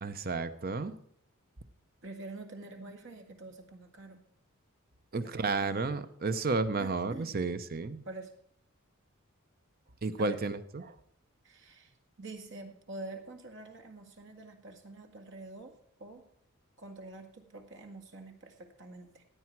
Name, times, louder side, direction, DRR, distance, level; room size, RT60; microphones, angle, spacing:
voice 1, 0.0-1.0 5.1-8.0 10.0-10.9, right 3 dB, 45° right, 12 dB, 0.8 m, -32 dB
voice 2, 2.0-4.2 5.2-5.8 6.8-7.4 8.0-8.3 10.2-10.4 11.4-16.2 16.8-19.2, right 2 dB, 60° right, 5 dB, 2.0 m, -46 dB
16.0 x 9.6 x 4.6 m, 0.66 s
head